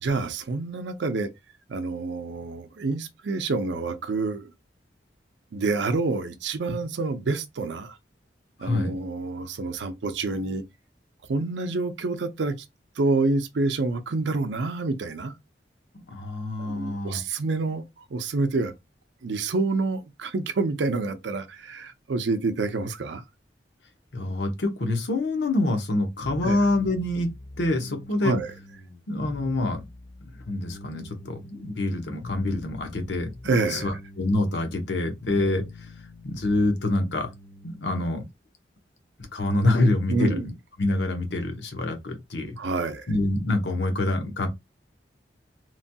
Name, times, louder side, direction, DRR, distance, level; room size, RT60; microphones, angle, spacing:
voice 1, 0.0-1.3 1.7-4.5 5.5-8.0 8.6-10.6 11.3-12.6 13.0-15.3 16.6-17.8 18.1-18.7 19.2-23.2 26.4-26.6 28.2-28.5 33.4-34.0 40.1-40.5 42.6-43.1, right 3 dB, 80° right, 0.5 m, -27 dB
voice 2, 8.6-9.0 15.9-17.2 24.1-27.3 27.6-28.4 29.1-29.9 30.2-33.3 33.7-35.6 36.2-37.3 37.6-38.2 39.3-40.5 40.8-42.6 43.1-44.5, left 2 dB, 75° left, 0.8 m, -26 dB
sound 1, 26.2-38.1, left 2 dB, 40° left, 0.5 m, -44 dB
3.0 x 2.2 x 2.7 m
head